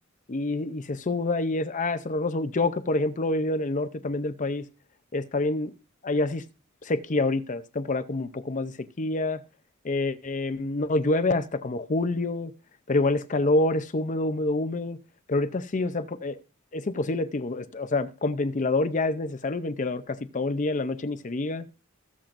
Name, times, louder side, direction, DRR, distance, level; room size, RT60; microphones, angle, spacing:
voice 1, 0.3-4.7 5.1-5.7 6.0-6.4 6.8-9.4 9.8-12.5 12.9-15.0 15.3-16.4 16.7-21.6, left 2 dB, 35° left, 0.6 m, -27 dB
22.0 x 7.5 x 2.6 m
head